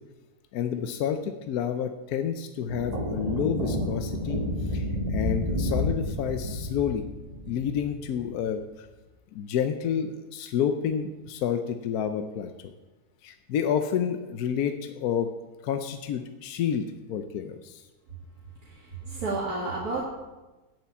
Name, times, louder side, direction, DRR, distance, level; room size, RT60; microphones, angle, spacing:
voice 1, 0.5-4.4 4.7-7.0 7.5-8.6 9.3-12.7 13.2-15.3 15.6-17.8, left 8 dB, 75° left, 7 dB, 1.2 m, -29 dB
sound 1, 2.7-8.3, left 1 dB, 25° right, 1.3 m, -30 dB
voice 2, 18.6-20.0, right 3 dB, 70° right, -5 dB, 2.3 m, -31 dB
8.4 x 7.6 x 8.6 m, 1.1 s
omnidirectional pair, 1.6 m